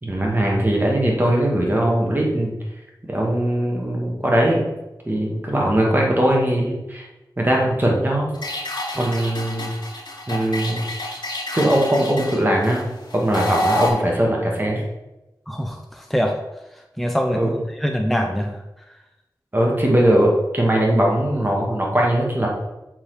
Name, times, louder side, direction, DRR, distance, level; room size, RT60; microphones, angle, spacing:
voice 1, 0.0-2.5 3.1-4.6 5.1-7.1 7.4-8.3 9.0-9.7 10.3-10.9 11.5-14.8 17.3-17.6 19.5-22.5, right 1 dB, 25° right, -2 dB, 2.3 m, -20 dB
sound 1, 8.3-13.9, left 1 dB, 75° left, 2.6 m, -28 dB
voice 2, 15.5-16.4 17.0-18.6, equal, ahead, 3 dB, 0.8 m, -24 dB
7.2 x 4.5 x 5.2 m, 0.98 s
cardioid pair, 45°, 8 cm